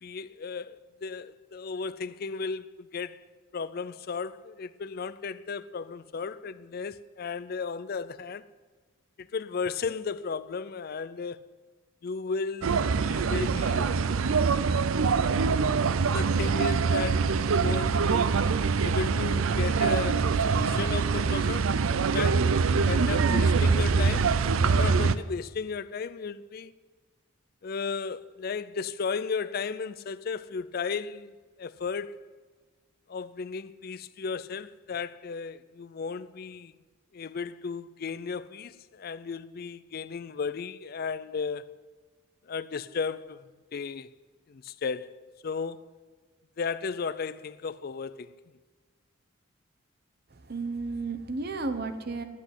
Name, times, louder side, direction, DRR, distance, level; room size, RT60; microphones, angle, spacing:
voice 1, 0.0-3.2 3.5-8.4 9.2-11.4 12.0-13.9 16.1-18.4 18.8-24.3 24.7-26.7 27.6-31.3 31.6-32.2 33.1-36.7 37.1-41.7 42.4-44.1 44.5-45.1 45.4-45.9 46.6-48.3, left 5 dB, 45° left, 0.4 m, -35 dB
sound 1, 12.6-25.2, right 5 dB, 80° right, 0.5 m, -24 dB
voice 2, 50.3-52.2, right 3 dB, 50° right, 0.9 m, -33 dB
10.0 x 8.3 x 9.6 m
head